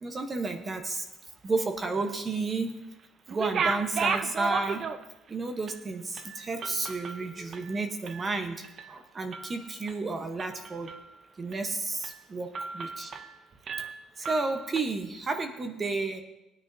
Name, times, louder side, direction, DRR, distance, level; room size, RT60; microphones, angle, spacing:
voice 1, 0.0-1.0 1.4-2.7 3.3-4.8 5.3-10.9 11.4-12.5 12.7-13.1 14.2-16.2, right 3 dB, 25° right, 6 dB, 1.0 m, -32 dB
sound 1, 3.3-5.3 5.7-5.8 6.2-8.3 8.6-8.9 9.3-10.0 10.4-11.1 11.5-11.7 12.0-12.2 12.5-13.4 13.7-14.8, right 5 dB, 40° right, 0.6 m, -34 dB
18.0 x 9.6 x 2.7 m, 0.96 s
cardioid pair, 150°, 0 cm